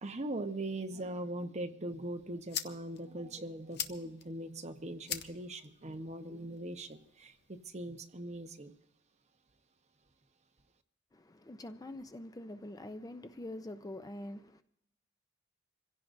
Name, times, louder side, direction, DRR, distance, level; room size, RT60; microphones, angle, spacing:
voice 1, 0.0-8.7, right 1 dB, 35° right, 0.9 m, -41 dB
sound 1, 1.9-7.9, left 9 dB, 55° left, 0.8 m, -45 dB
voice 2, 11.1-14.6, left 1 dB, 20° left, 0.5 m, -45 dB
26.5 x 16.5 x 2.6 m
head